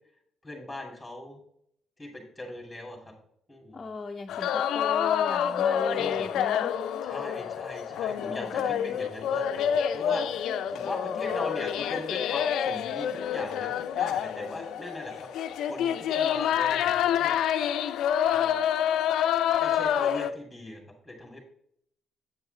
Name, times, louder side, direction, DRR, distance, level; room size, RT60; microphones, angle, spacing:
voice 1, 0.4-1.4 2.0-3.1 3.5-3.8 5.9-6.3 7.0-15.3 15.6-17.4 18.3-18.6 19.6-21.4, left 1 dB, 5° left, -1 dB, 2.2 m, -40 dB
voice 2, 3.7-6.8 8.2-9.0 9.9-10.0, left 3 dB, 30° left, 1 dB, 0.6 m, -38 dB
sound 1, 4.3-20.3, left 9 dB, 80° left, 0.4 m, -27 dB
8.0 x 4.7 x 3.9 m, 0.70 s
cardioid pair, 90°, 0 cm